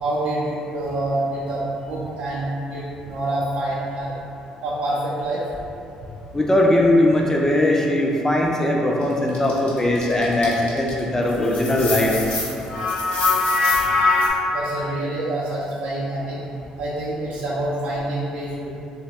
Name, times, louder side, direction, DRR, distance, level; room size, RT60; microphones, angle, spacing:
voice 1, 0.0-4.1 4.6-5.4 14.5-16.4 16.8-18.7, right 1 dB, 75° right, -9 dB, 0.4 m, -26 dB
voice 2, 6.3-12.1, left 1 dB, 15° left, -1 dB, 0.4 m, -19 dB
sound 1, 9.3-11.0 11.3-14.3, left 3 dB, 60° left, 0.7 m, -22 dB
2.6 x 2.1 x 2.9 m, 2.7 s
supercardioid pair, 65°, 3 cm